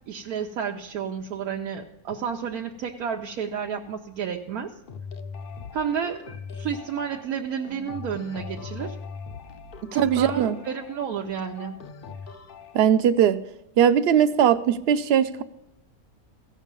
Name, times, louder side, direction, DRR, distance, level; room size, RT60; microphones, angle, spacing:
voice 1, 0.1-4.7 5.7-6.2 6.6-9.0 9.9-11.8, right 7 dB, 85° right, 1 dB, 1.2 m, -31 dB
sound 1, 4.9-12.8, left 5 dB, 55° left, 0.6 m, -40 dB
voice 2, 10.0-10.6 12.7-13.4 13.8-15.4, right 9 dB, 60° right, 12 dB, 0.7 m, -19 dB
15.5 x 6.4 x 5.3 m, 0.87 s
omnidirectional pair, 1.5 m